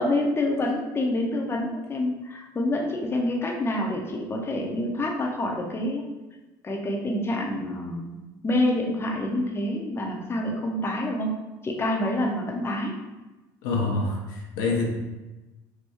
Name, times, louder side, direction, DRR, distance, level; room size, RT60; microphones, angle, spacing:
voice 1, 0.0-6.0 6.6-11.3 11.6-12.9, left 1 dB, 25° left, 0 dB, 0.6 m, -27 dB
voice 2, 13.6-14.9, left 3 dB, 80° left, -1 dB, 0.6 m, -26 dB
3.4 x 2.2 x 2.9 m, 1.1 s
hypercardioid pair, 75°, 10 cm